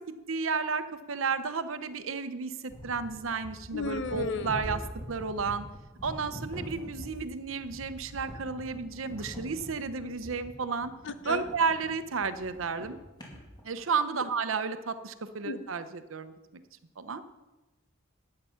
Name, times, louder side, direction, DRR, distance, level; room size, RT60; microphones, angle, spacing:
voice 1, 0.1-2.5 2.8-4.8 5.1-5.7 6.0-10.9 11.2-13.0 13.6-16.3 17.0-17.2, right 5 dB, 75° right, 11 dB, 0.8 m, -32 dB
sound 1, 2.7-13.8, equal, 20° left, 2.5 m, -43 dB
voice 2, 3.7-4.5 11.3-11.4 15.5-15.6, left 3 dB, 60° left, 11 dB, 0.8 m, -33 dB
12.0 x 8.6 x 5.7 m, 1.1 s
head